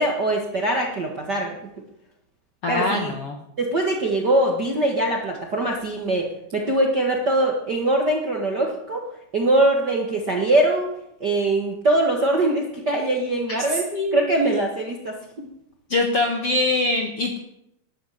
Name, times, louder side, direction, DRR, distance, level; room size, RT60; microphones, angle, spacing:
voice 1, 0.0-1.6 2.7-3.1 3.6-9.0 9.3-10.9 11.2-13.8 14.1-15.5, right 1 dB, 45° right, 0 dB, 1.4 m, -22 dB
voice 2, 2.6-3.4 13.7-14.2 15.9-17.4, left 2 dB, 60° left, 3 dB, 1.6 m, -23 dB
12.5 x 10.0 x 9.2 m, 0.80 s
omnidirectional pair, 4.6 m